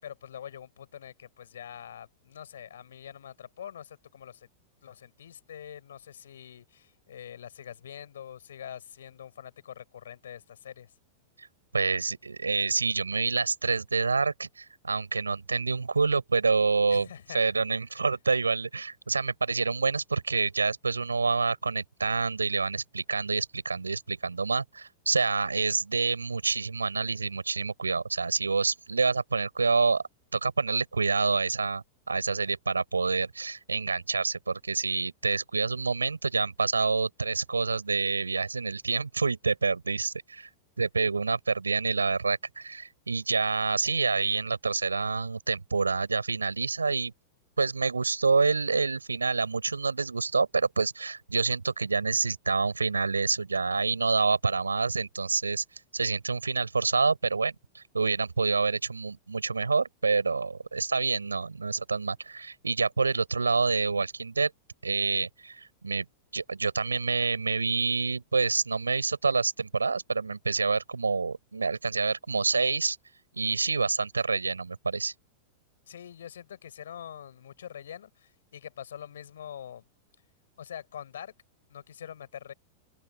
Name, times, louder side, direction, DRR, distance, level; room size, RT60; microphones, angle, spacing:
voice 1, 0.0-4.5 4.8-10.9 16.9-17.4 75.9-79.8 80.6-81.3 81.7-82.5, left 9 dB, 70° left, 6.3 m, -44 dB
voice 2, 11.7-17.1 17.3-30.0 30.3-40.5 40.8-47.1 47.6-55.6 55.9-64.5 64.8-66.0 66.3-73.0 73.3-75.1, right 4 dB, 85° right, 6.2 m, -27 dB
open air
figure-of-eight pair, 95°, 0 cm